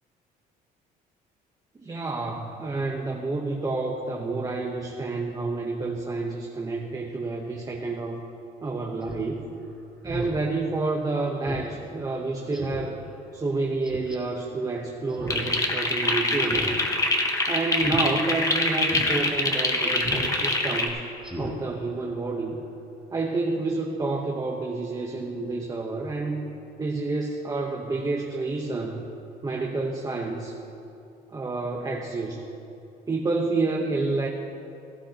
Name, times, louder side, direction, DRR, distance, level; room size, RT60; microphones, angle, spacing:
voice 1, 1.7-8.2 8.6-9.5 10.0-13.0 13.3-16.7 17.5-21.0 21.4-22.6 23.1-29.1 29.4-30.6 31.3-32.4 33.1-34.3, right 3 dB, 20° right, 0 dB, 1.0 m, -29 dB
Speech synthesizer, 9.0-9.2 9.6-9.7 10.0-10.4 10.8-10.9 11.4-11.6 12.0-12.1 12.5-12.9 13.8-14.2 15.1-15.5 15.7-15.8 16.4-16.8 17.0-17.3 17.7-18.0 18.4-18.5 18.9-19.1 20.0-20.3 20.6-20.8 21.2-21.5 21.9-22.0, equal, ahead, 2.7 m, -35 dB
sound 1, 15.3-20.9, left 2 dB, 20° left, 1.3 m, -25 dB
17.0 x 13.5 x 2.9 m, 2.7 s
cardioid pair, 110°, 17 cm